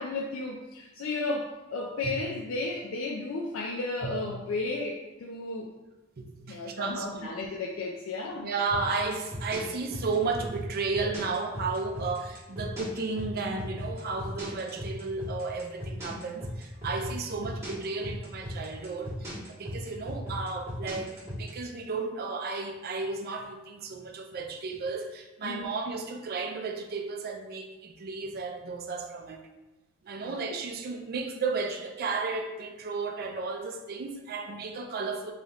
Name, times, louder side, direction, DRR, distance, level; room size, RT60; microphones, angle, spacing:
voice 1, 0.0-5.7 6.5-8.5 25.4-25.7 30.2-30.6, left 3 dB, 75° left, -1 dB, 0.4 m, -34 dB
voice 2, 6.2-7.3 8.4-29.4 30.0-35.3, right 4 dB, 50° right, 4 dB, 0.5 m, -33 dB
sound 1, 8.7-21.5, equal, 15° right, 1.5 m, -37 dB
3.1 x 3.0 x 3.8 m, 1.1 s
head